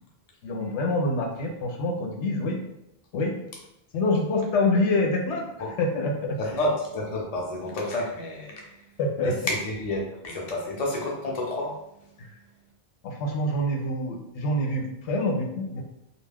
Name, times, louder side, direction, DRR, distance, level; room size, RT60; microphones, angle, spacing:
voice 1, 0.4-2.6 3.1-3.3 3.9-5.4 5.8-6.4 9.0-9.3 12.2-12.3 13.0-15.8, left 2 dB, 85° left, 1 dB, 0.9 m, -26 dB
voice 2, 6.4-12.1, left 1 dB, 40° left, -2 dB, 0.6 m, -30 dB
2.3 x 2.2 x 3.4 m, 0.82 s
omnidirectional pair, 1.1 m